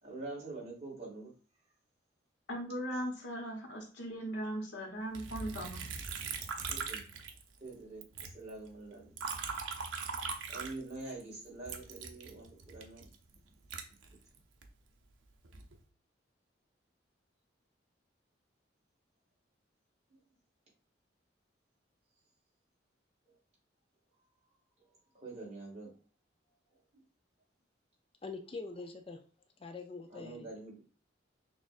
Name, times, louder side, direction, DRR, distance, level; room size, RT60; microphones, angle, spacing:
voice 1, 0.0-1.3 6.7-7.1 7.6-9.1 10.5-13.1 24.8-24.9 25.1-25.9 30.1-30.8, right 3 dB, 35° right, -4 dB, 2.0 m, -45 dB
voice 2, 2.5-5.8, equal, 70° left, 1 dB, 1.1 m, -38 dB
Liquid, 5.1-7.7 8.0-11.2 11.6-14.7 15.2-15.8, right 5 dB, 90° right, 0.6 m, -41 dB
voice 3, 28.2-29.2 29.6-30.5, left 3 dB, 30° left, 6 dB, 0.4 m, -44 dB
6.2 x 2.4 x 2.4 m, 0.38 s
head